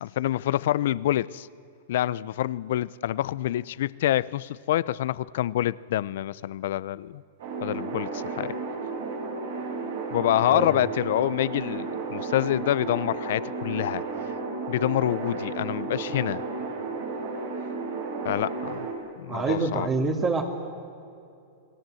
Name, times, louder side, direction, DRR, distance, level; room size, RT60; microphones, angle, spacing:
voice 1, 0.0-1.5 1.9-7.2 7.6-8.5 10.1-14.0 14.7-16.4 18.2-18.9 19.2-19.9, left 13 dB, 70° left, 20 dB, 0.7 m, -26 dB
sound 1, 7.4-18.9, right 4 dB, 75° right, 7.2 m, -33 dB
voice 2, 10.5-10.8 19.3-20.4, right 4 dB, 25° right, 1 dB, 2.5 m, -26 dB
29.5 x 20.5 x 7.8 m, 2.6 s
hypercardioid pair, 135°, 0 cm